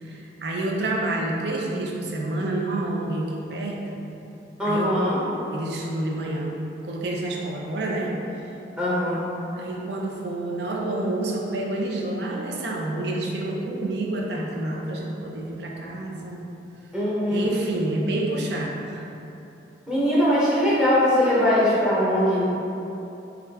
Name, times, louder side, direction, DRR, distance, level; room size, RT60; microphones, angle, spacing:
voice 1, 0.0-4.0 4.6-4.9 5.5-8.1 9.6-16.4 17.3-19.1, right 2 dB, 65° right, -1 dB, 0.5 m, -28 dB
voice 2, 4.6-5.2 8.8-9.2 16.9-17.5 19.9-22.5, left 1 dB, 5° right, -9 dB, 1.0 m, -21 dB
4.3 x 2.4 x 3.4 m, 2.9 s
head